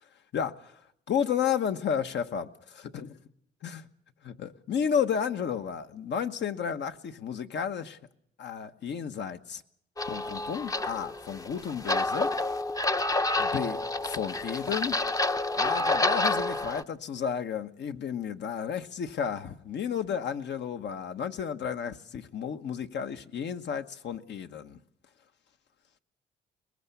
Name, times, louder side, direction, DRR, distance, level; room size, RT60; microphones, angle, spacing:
voice 1, 1.1-3.2 3.6-3.8 4.2-8.0 8.4-9.6 10.1-12.3 13.4-15.0 15.6-24.8, left 7 dB, 60° left, 1.2 m, -32 dB
sound 1, 10.0-16.8, left 2 dB, 15° left, 0.8 m, -29 dB
22.5 x 20.5 x 7.0 m
cardioid pair, 90°, 20 cm